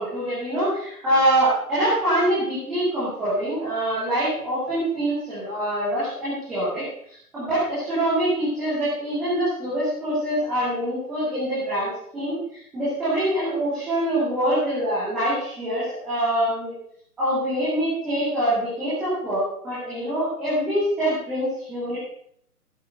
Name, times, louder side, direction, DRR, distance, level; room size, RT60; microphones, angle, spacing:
voice 1, 0.0-16.7 17.2-22.0, right 1 dB, ahead, -13 dB, 0.7 m, -25 dB
15.0 x 7.6 x 6.4 m, 0.66 s
figure-of-eight pair, 140°, 47 cm